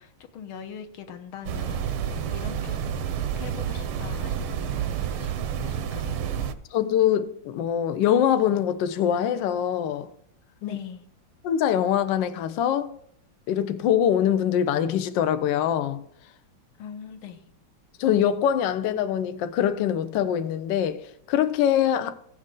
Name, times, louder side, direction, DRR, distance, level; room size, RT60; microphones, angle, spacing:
voice 1, 0.0-2.8 3.4-5.4 5.7-6.2 10.6-11.0 16.8-17.4, left 8 dB, 85° left, 1.8 m, -41 dB
sound 1, 1.5-6.5, right 8 dB, 90° right, 1.6 m, -29 dB
voice 2, 6.7-10.1 10.6-10.8 11.4-12.9 13.5-16.0 18.0-22.1, left 9 dB, 70° left, 1.2 m, -23 dB
15.5 x 6.5 x 3.7 m
omnidirectional pair, 2.3 m